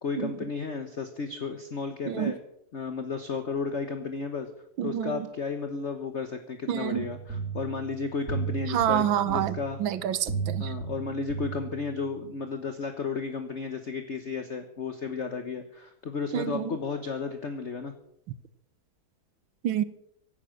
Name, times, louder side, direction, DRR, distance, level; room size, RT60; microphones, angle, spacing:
voice 1, 0.0-2.4 2.7-4.5 4.8-9.8 10.6-17.9, left 4 dB, 40° left, 7 dB, 1.2 m, -33 dB
voice 2, 4.8-5.3 6.7-7.1 8.7-10.8 16.3-16.8 19.6-19.8, right 10 dB, 90° right, 15 dB, 1.7 m, -28 dB
sound 1, 6.9-12.2, right 5 dB, 45° right, 4.6 m, -35 dB
16.5 x 11.5 x 6.4 m, 0.74 s
omnidirectional pair, 2.1 m